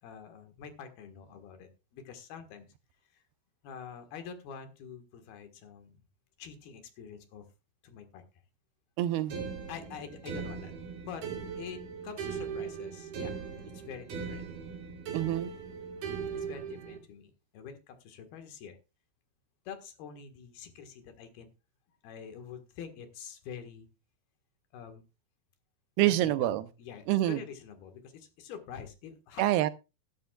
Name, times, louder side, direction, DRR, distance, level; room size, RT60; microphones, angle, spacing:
voice 1, 0.0-2.7 3.1-3.2 3.6-6.0 6.4-7.5 7.8-8.2 9.7-10.7 11.1-11.3 11.6-13.3 13.7-14.5 16.3-18.8 19.7-21.5 22.0-23.9 24.7-25.0 26.0-29.5, left 7 dB, 75° left, 3.6 m, -46 dB
voice 2, 9.0-9.3 15.1-15.5 26.0-26.6 27.1-27.4 29.4-29.7, right 14 dB, 85° right, 2.8 m, -26 dB
sound 1, 9.3-17.0, right 6 dB, 65° right, 4.3 m, -39 dB
15.0 x 12.0 x 2.4 m
omnidirectional pair, 4.4 m